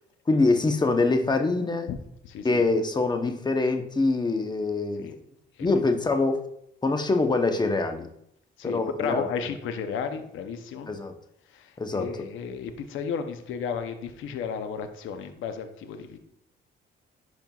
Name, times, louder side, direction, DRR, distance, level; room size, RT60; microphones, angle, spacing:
voice 1, 0.3-1.9 2.4-5.2 5.6-6.4 6.8-8.1 8.6-9.2 10.9-11.1 11.8-12.2, left 3 dB, 20° left, 6 dB, 0.8 m, -24 dB
voice 2, 2.2-2.6 5.0-5.2 5.6-5.7 8.6-10.9 11.5-16.2, left 6 dB, 80° left, 8 dB, 0.7 m, -33 dB
11.0 x 4.4 x 2.4 m, 0.74 s
cardioid pair, 90°, 20 cm